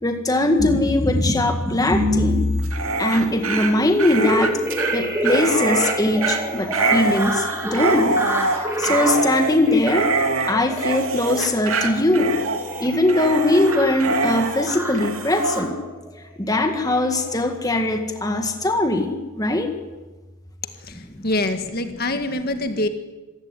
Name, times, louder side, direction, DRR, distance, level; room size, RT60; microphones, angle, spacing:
voice 1, 0.0-2.5 3.0-4.6 4.9-8.2 8.5-10.1 10.4-12.4 12.8-15.8 16.4-19.8 20.9-21.2, left 2 dB, 15° left, 5 dB, 1.8 m, -21 dB
sound 1, 0.6-16.0 16.7-17.0 17.2-17.5 17.7-17.9 18.2-18.4, equal, 10° right, 3.7 m, -27 dB
Dog, 2.6-15.6, right 3 dB, 70° right, 2.8 m, -25 dB
voice 2, 20.8-22.9, left 2 dB, 45° left, 7 dB, 1.9 m, -25 dB
26.0 x 15.5 x 9.8 m, 1.2 s
head